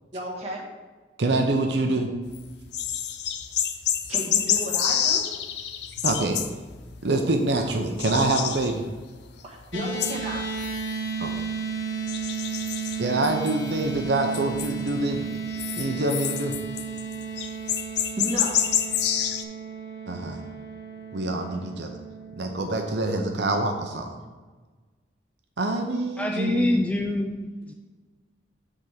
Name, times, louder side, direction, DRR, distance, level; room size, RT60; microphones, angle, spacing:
voice 1, 0.1-0.6 4.1-5.2 9.4-10.4 18.2-18.6, right 1 dB, 35° right, -3 dB, 1.6 m, -32 dB
voice 2, 1.2-2.1 6.0-6.4 7.0-8.8 11.2-11.3 13.0-15.3 15.8-16.6 20.1-20.4 21.1-22.0 22.4-24.1 25.6-26.8, right 2 dB, 65° right, 4 dB, 0.7 m, -25 dB
sound 1, 2.3-7.0 7.4-9.2 9.6-11.5 12.1-14.0 14.3-15.2 15.5-19.4, left 9 dB, 60° left, 0.5 m, -28 dB
sound 2, 9.7-24.1, right 5 dB, 85° left, 1.0 m, -34 dB
voice 3, 26.2-27.7, left 1 dB, 5° left, 3 dB, 0.3 m, -26 dB
8.0 x 3.6 x 5.8 m, 1.3 s
head